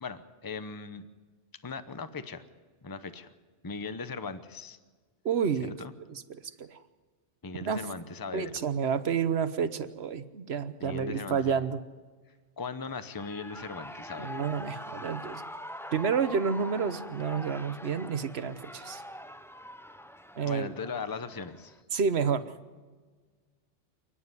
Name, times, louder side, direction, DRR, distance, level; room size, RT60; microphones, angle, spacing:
voice 1, 0.0-1.0 1.6-2.5 2.8-3.3 3.6-4.8 5.8-5.9 7.4-8.6 10.8-11.6 12.6-14.4 20.4-21.8, left 4 dB, 20° left, 11 dB, 0.8 m, -39 dB
voice 2, 5.2-5.7 6.3-6.8 7.6-7.9 8.3-11.8 14.2-15.4 15.9-19.0 20.4-20.7 21.9-22.5, right 6 dB, 70° right, 12 dB, 1.2 m, -30 dB
Shout / Cheering, 12.9-21.8, left 1 dB, 5° left, 0.4 m, -44 dB
28.5 x 9.9 x 9.7 m, 1.4 s
omnidirectional pair, 1.1 m